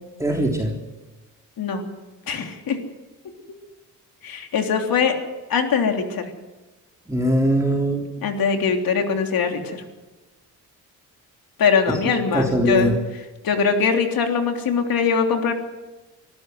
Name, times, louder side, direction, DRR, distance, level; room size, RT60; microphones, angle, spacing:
voice 1, 0.2-0.8 7.1-8.1 12.3-12.9, right 1 dB, 10° right, -1 dB, 3.5 m, -21 dB
voice 2, 2.3-2.8 4.2-5.2 5.5-6.3 8.2-9.8 11.6-12.9 13.4-15.5, left 6 dB, 65° left, 4 dB, 3.4 m, -22 dB
25.0 x 14.0 x 8.1 m, 1.1 s
supercardioid pair, 65°, 37 cm